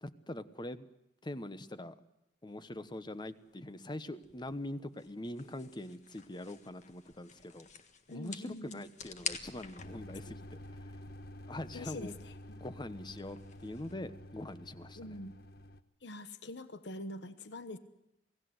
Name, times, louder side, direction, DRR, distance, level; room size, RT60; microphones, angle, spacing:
voice 1, 0.0-0.9 1.2-2.0 2.4-7.7 8.1-10.6 11.5-12.1 12.5-15.2, left 1 dB, 25° left, 13 dB, 1.0 m, -43 dB
sound 1, 2.7-13.9, left 6 dB, 45° left, 1.6 m, -49 dB
voice 2, 8.1-8.9 11.7-12.1 15.0-15.3 16.0-17.8, left 1 dB, 80° left, 12 dB, 1.1 m, -44 dB
sound 2, 9.8-15.8, left 1 dB, 60° left, 1.1 m, -49 dB
28.0 x 18.0 x 7.9 m, 0.85 s
head